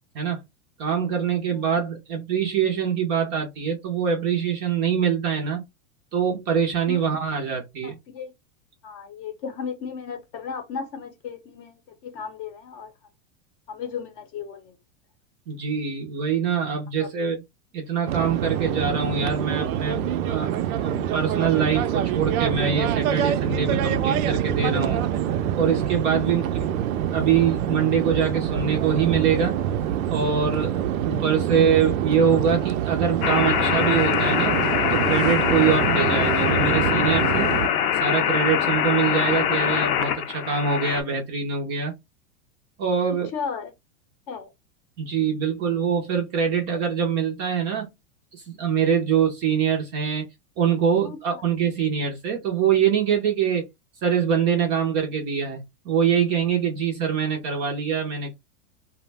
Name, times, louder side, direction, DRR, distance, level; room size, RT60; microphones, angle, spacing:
voice 1, 0.8-5.6 6.1-8.0 15.5-17.4 17.7-20.5 20.8-25.0 25.6-26.4 27.1-29.6 30.1-30.8 31.0-34.6 34.9-37.5 37.9-41.9 42.8-43.3 45.0-47.9 48.3-50.2 50.6-53.6 54.0-58.3, right 7 dB, 25° right, 0.4 m, -24 dB
voice 2, 7.8-8.3 8.8-12.9 13.7-14.8 17.0-17.1 26.1-26.5 35.5-35.7 38.5-38.6 43.3-43.7 44.3-44.5 51.0-51.4, left 6 dB, 35° left, 0.6 m, -35 dB
sound 1, 18.1-37.7, right 10 dB, 80° right, 0.5 m, -25 dB
sound 2, 33.2-41.0, left 9 dB, 85° left, 0.6 m, -23 dB
2.4 x 2.0 x 3.2 m
supercardioid pair, 150°, 42 cm